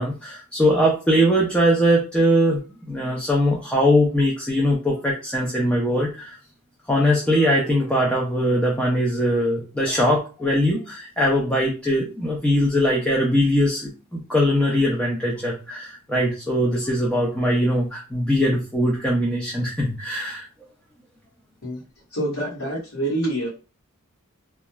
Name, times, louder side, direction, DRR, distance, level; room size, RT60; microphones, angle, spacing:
voice 1, 0.0-2.6 2.9-6.4 6.9-20.4, equal, 5° left, -3 dB, 0.4 m, -21 dB
voice 2, 22.1-23.5, right 1 dB, 75° left, -8 dB, 1.2 m, -26 dB
2.9 x 2.3 x 2.2 m, 0.33 s
head